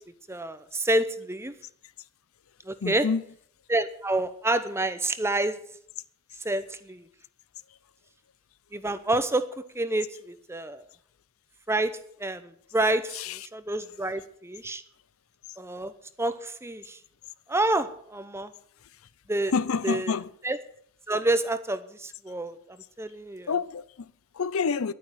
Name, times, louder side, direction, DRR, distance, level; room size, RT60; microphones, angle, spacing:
voice 1, 0.3-1.5 2.6-3.1 3.7-5.6 6.4-7.1 8.7-9.5 9.7-10.8 11.7-11.9 12.2-14.8 15.6-15.9 16.2-17.0 17.5-18.5 19.3-19.5 19.8-20.1 20.4-20.6 21.1-23.5, right 2 dB, 10° right, 0.8 m, -28 dB
voice 2, 2.8-3.2 13.1-13.5 18.8-18.9 19.5-20.3 23.5-24.9, left 5 dB, 75° left, 0.6 m, -28 dB
11.5 x 9.6 x 8.0 m
head